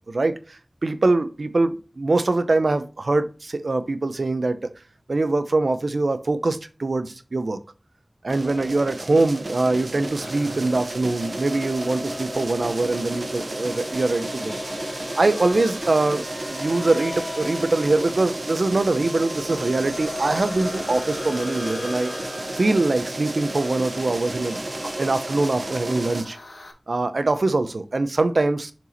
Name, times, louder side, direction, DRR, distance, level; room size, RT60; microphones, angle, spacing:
voice 1, 0.1-0.4 0.8-4.6 5.1-7.6 8.2-14.9 15.2-16.2 16.5-22.1 22.6-24.6 25.0-26.4 26.9-28.7, right 2 dB, 90° right, 0.8 m, -23 dB
sound 1, 8.3-26.2, right 2 dB, 70° right, 1.1 m, -33 dB
sound 2, 10.2-26.7, left 2 dB, 90° left, 1.4 m, -38 dB
7.0 x 4.6 x 4.3 m
wide cardioid pair, 45°, 0 cm